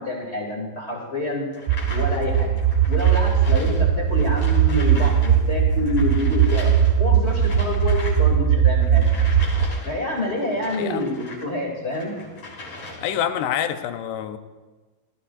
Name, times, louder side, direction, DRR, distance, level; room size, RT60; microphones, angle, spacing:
voice 1, 0.0-1.5 1.9-2.5 2.9-6.7 7.0-9.0 9.8-12.1, left 1 dB, 20° left, -2 dB, 2.2 m, -27 dB
sound 1, 1.5-5.3 5.6-11.5 11.9-13.3, left 2 dB, 45° left, 4.6 m, -39 dB
sound 2, 1.7-9.7, right 8 dB, 90° right, 2.8 m, -19 dB
voice 2, 10.7-11.1 13.0-14.4, left 10 dB, 80° left, 9 dB, 2.7 m, -26 dB
18.5 x 14.5 x 2.5 m, 1.3 s
omnidirectional pair, 4.9 m